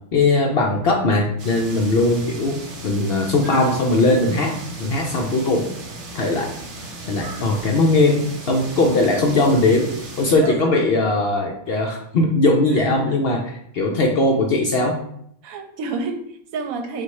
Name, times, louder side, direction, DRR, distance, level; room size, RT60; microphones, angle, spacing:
voice 1, 0.1-2.6 2.8-5.7 6.1-6.5 7.1-9.9 10.2-15.0, left 2 dB, 65° left, 1 dB, 0.6 m, -19 dB
sound 1, 1.4-10.4, right 2 dB, 60° right, 1.1 m, -36 dB
voice 2, 15.4-17.0, right 4 dB, 85° right, 6 dB, 1.0 m, -29 dB
4.0 x 2.5 x 4.6 m, 0.72 s
omnidirectional pair, 1.5 m